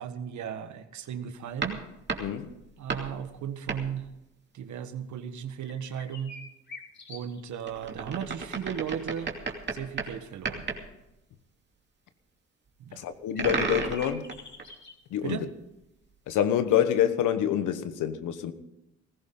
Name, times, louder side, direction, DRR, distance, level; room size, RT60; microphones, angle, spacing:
voice 1, 0.0-1.8 2.8-4.1 4.5-6.3 7.1-9.3 9.7-10.7 12.8-13.1 15.2-15.5, right 8 dB, 70° right, 1.5 m, -36 dB
sound 1, 1.6-3.2 3.7-3.9 7.7-10.2 10.4-10.8 13.4-14.7 16.1-16.2, right 4 dB, 35° right, 2.6 m, -33 dB
voice 2, 2.2-2.5 13.0-14.2 15.1-15.4 16.3-18.5, left 10 dB, 85° left, 1.3 m, -26 dB
sound 2, 5.6-7.7 8.0-8.1 13.4-15.0, left 2 dB, 40° left, 4.8 m, -46 dB
19.0 x 15.5 x 3.9 m
cardioid pair, 90°, 30 cm